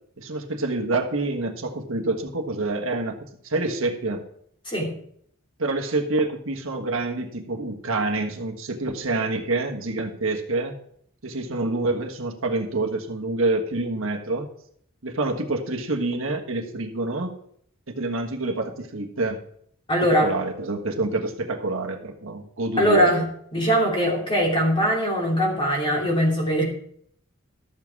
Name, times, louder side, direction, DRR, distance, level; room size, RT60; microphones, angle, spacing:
voice 1, 0.2-3.2 3.4-4.2 5.6-10.7 11.2-14.5 15.0-17.3 17.9-19.4 20.0-23.2, right 2 dB, 65° right, 3 dB, 1.4 m, -27 dB
voice 2, 19.9-20.3 22.8-23.2 23.5-26.6, equal, 25° left, -1 dB, 2.9 m, -21 dB
13.0 x 7.4 x 4.7 m, 0.65 s
head